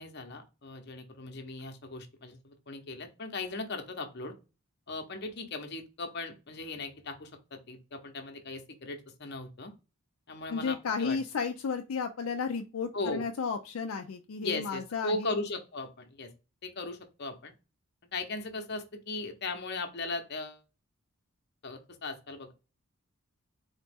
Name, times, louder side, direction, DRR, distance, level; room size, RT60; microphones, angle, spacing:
voice 1, 0.0-4.4 4.9-9.7 10.3-11.2 12.9-13.3 14.4-16.3 16.6-17.5 18.1-20.6 21.6-22.5, left 2 dB, 50° left, 5 dB, 0.9 m, -38 dB
voice 2, 10.5-15.4, left 5 dB, 80° left, 5 dB, 0.4 m, -33 dB
4.0 x 3.0 x 3.4 m, 0.30 s
head